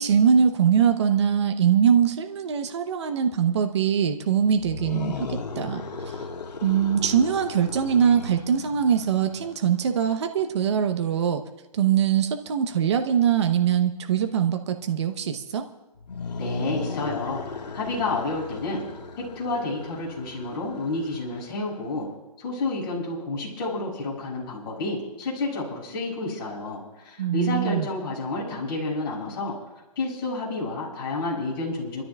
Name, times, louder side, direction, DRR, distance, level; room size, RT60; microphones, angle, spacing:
voice 1, 0.0-6.3 6.6-11.4 11.7-15.7 27.2-27.9, right 8 dB, 40° right, 6 dB, 1.0 m, -22 dB
sound 1, 4.5-9.7 16.0-21.6, left 4 dB, 90° left, 1.7 m, -36 dB
voice 2, 16.4-17.4 17.7-18.8 19.1-22.1 22.4-29.6 30.0-32.0, left 2 dB, 35° left, -4 dB, 6.9 m, -30 dB
30.0 x 13.5 x 2.4 m, 1.0 s
hypercardioid pair, 165°, 21 cm